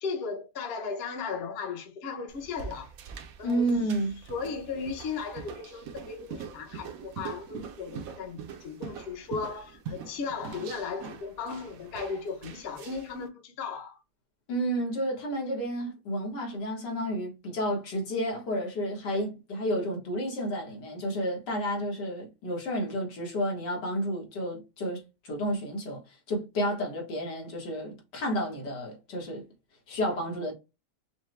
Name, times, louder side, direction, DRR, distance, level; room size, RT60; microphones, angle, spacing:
voice 1, 0.0-2.9 3.4-3.7 4.3-14.0, left 5 dB, 45° left, 1.0 m, -36 dB
sound 1, 2.3-13.2, right 6 dB, 65° right, 1.0 m, -43 dB
voice 2, 3.4-4.2 14.5-29.4 29.9-30.5, equal, 85° left, 2.1 m, -31 dB
5.6 x 2.2 x 3.2 m
omnidirectional pair, 1.8 m